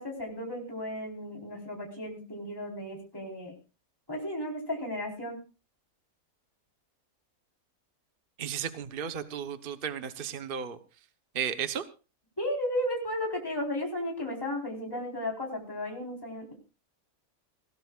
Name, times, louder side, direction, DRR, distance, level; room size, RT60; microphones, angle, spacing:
voice 1, 0.0-3.5 4.1-5.4 12.4-16.5, left 1 dB, 15° left, -1 dB, 4.1 m, -34 dB
voice 2, 8.4-10.8 11.3-11.8, right 8 dB, 40° right, 10 dB, 1.1 m, -34 dB
20.5 x 17.5 x 2.4 m, 0.33 s
omnidirectional pair, 1.5 m